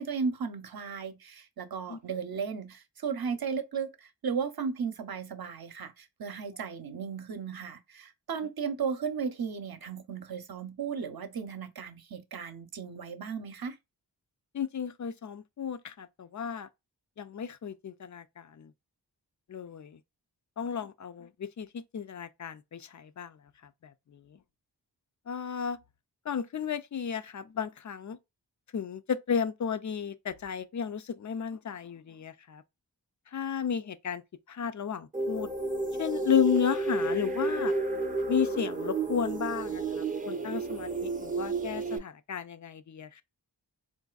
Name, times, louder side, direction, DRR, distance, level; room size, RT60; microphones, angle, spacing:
voice 1, 0.0-13.8, right 6 dB, 55° right, 0.7 m, -35 dB
voice 2, 14.5-16.7 17.2-18.7 19.5-20.0 20.6-23.4 23.8-24.4 25.3-25.8 26.3-28.2 28.7-32.6 33.3-34.2 34.5-35.5 36.0-37.7 38.3-43.2, left 7 dB, 45° left, 0.4 m, -33 dB
sound 1, 35.1-42.0, right 3 dB, 20° right, 0.5 m, -31 dB
3.8 x 2.6 x 2.3 m
cardioid pair, 50°, 43 cm